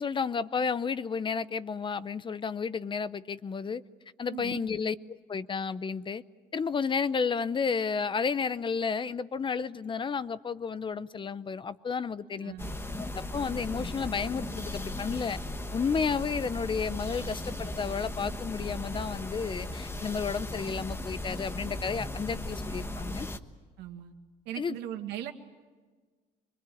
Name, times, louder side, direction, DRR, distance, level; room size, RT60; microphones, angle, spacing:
voice 1, 0.0-3.8 4.2-6.2 6.5-12.5 13.0-15.4 15.7-23.3 24.6-24.8, left 5 dB, 30° left, 16 dB, 0.7 m, -32 dB
voice 2, 4.3-4.7 12.4-12.8 17.0-17.3 23.8-24.1 24.5-25.3, right 12 dB, 90° right, 5 dB, 2.1 m, -39 dB
sound 1, 12.6-23.4, left 1 dB, 15° left, 1.3 m, -37 dB
sound 2, 14.8-20.1, right 4 dB, 20° right, 1.1 m, -49 dB
25.0 x 22.0 x 9.4 m, 1.4 s
cardioid pair, 110°, 17 cm